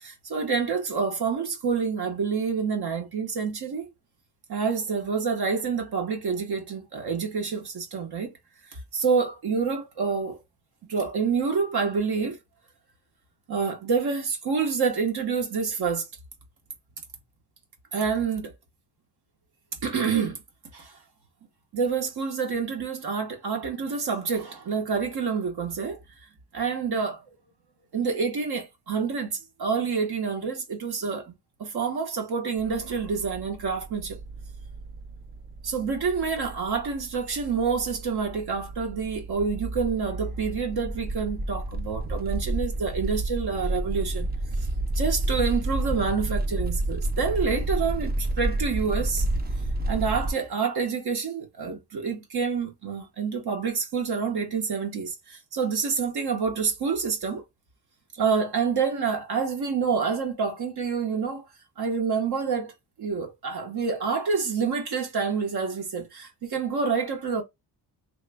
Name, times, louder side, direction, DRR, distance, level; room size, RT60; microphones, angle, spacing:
voice 1, 0.0-3.9 4.5-8.3 8.7-10.4 10.8-12.4 13.5-16.1 17.9-18.5 19.8-20.4 20.7-20.9 21.7-26.0 26.5-27.2 27.9-31.3 31.6-34.2 35.6-44.3 44.9-49.2 49.9-57.4 58.2-61.4 61.8-62.7 63.0-67.4, right 5 dB, 65° right, 1.0 m, -27 dB
sound 1, 32.6-50.3, right 1 dB, 25° right, 0.4 m, -30 dB
3.0 x 2.1 x 3.4 m
wide cardioid pair, 125°, 42 cm